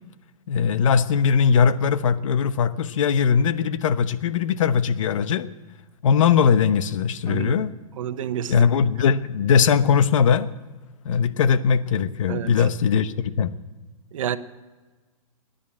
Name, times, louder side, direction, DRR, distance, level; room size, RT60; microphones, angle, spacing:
voice 1, 0.5-5.5 6.0-7.7 8.5-10.5 11.0-13.5, left 6 dB, 65° left, 13 dB, 1.0 m, -20 dB
voice 2, 7.3-7.6 8.0-8.7 12.3-12.5 14.1-14.4, right 9 dB, 65° right, 12 dB, 1.0 m, -29 dB
17.5 x 10.5 x 7.5 m, 1.3 s
hypercardioid pair, 135°, 18 cm